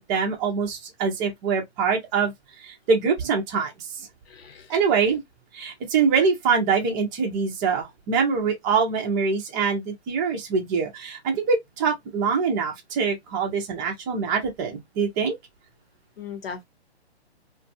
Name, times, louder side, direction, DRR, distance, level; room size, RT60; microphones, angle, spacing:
voice 1, 0.0-2.3 2.6-4.1 4.7-5.2 5.5-15.3, right 5 dB, 20° right, 0.6 m, -24 dB
voice 2, 4.3-4.7 16.2-16.6, left 6 dB, 60° left, 1.0 m, -38 dB
2.5 x 2.4 x 2.6 m
hypercardioid pair, 145°, 33 cm